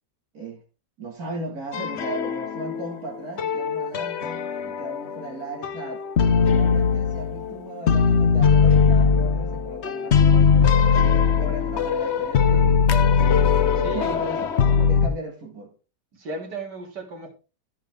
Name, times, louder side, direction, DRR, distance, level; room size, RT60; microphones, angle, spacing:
voice 1, 1.0-6.0 6.5-11.0 11.4-13.1 13.7-15.7, right 1 dB, 60° right, 2.4 m, -36 dB
sound 1, 1.7-2.9 3.4-5.3 5.6-7.6 7.9-15.1, left 6 dB, 50° left, 0.9 m, -20 dB
voice 2, 10.9-11.3 11.6-11.9 13.8-14.2 16.1-17.3, right 3 dB, 80° right, 3.0 m, -36 dB
15.0 x 5.2 x 3.5 m
omnidirectional pair, 1.8 m